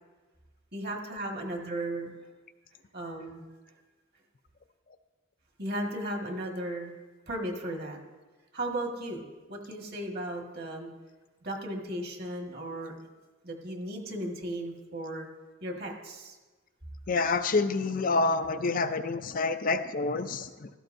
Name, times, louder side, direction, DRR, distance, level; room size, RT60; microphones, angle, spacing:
voice 1, 0.7-2.1 2.9-3.5 5.6-6.9 7.3-8.0 8.5-9.2 9.5-10.9 11.4-12.9 13.4-15.3 15.6-16.4, right 1 dB, 50° right, 1 dB, 1.7 m, -35 dB
voice 2, 17.1-20.7, left 3 dB, 45° left, 9 dB, 0.5 m, -28 dB
16.0 x 14.0 x 2.6 m, 1.3 s
head